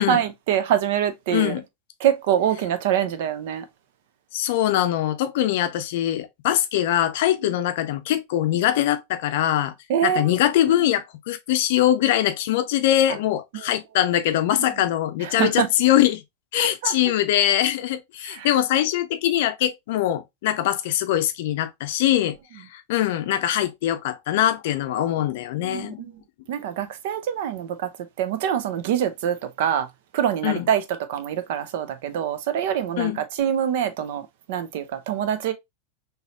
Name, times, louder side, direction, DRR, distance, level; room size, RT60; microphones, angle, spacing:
voice 1, 0.0-1.6 2.0-3.7 7.4-7.5 9.9-10.3 10.7-10.9 13.1-13.2 13.5-13.7 15.2-15.7 16.6-16.9 18.2-18.5 25.6-26.2 26.5-27.9 28.2-29.9 30.1-30.8 31.1-35.5, right 9 dB, 50° right, 0.6 m, -25 dB
voice 2, 1.3-1.6 4.3-9.7 10.0-16.2 16.5-26.1 30.4-30.7 33.0-33.2, left 12 dB, 50° left, 0.5 m, -22 dB
4.0 x 2.8 x 2.8 m
figure-of-eight pair, 90°, 0 cm